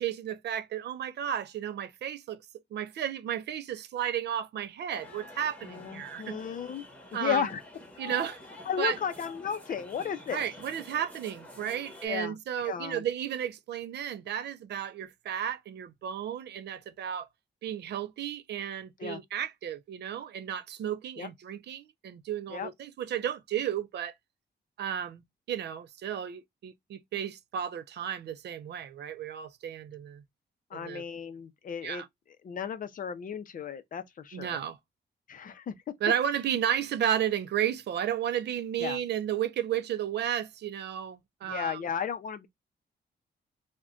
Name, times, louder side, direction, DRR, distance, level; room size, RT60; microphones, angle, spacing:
voice 1, 0.0-2.4 2.7-6.4 7.1-7.4 8.0-8.4 8.8-9.0 10.3-17.3 17.6-24.1 24.8-25.2 25.5-30.2 30.7-31.0 31.8-32.1 34.3-34.8 36.0-41.8, right 10 dB, 70° right, 0.4 m, -33 dB
sound 1, 4.9-12.1, left 2 dB, 10° left, 0.9 m, -48 dB
voice 2, 5.6-6.8 7.1-7.6 8.7-10.4 12.0-13.0 19.0-19.2 21.2-21.3 22.5-22.7 30.7-32.0 32.4-34.6 35.3-35.8 38.8-39.0 41.4-42.5, left 8 dB, 50° left, 0.5 m, -34 dB
2.3 x 2.2 x 3.6 m
wide cardioid pair, 150°, 18 cm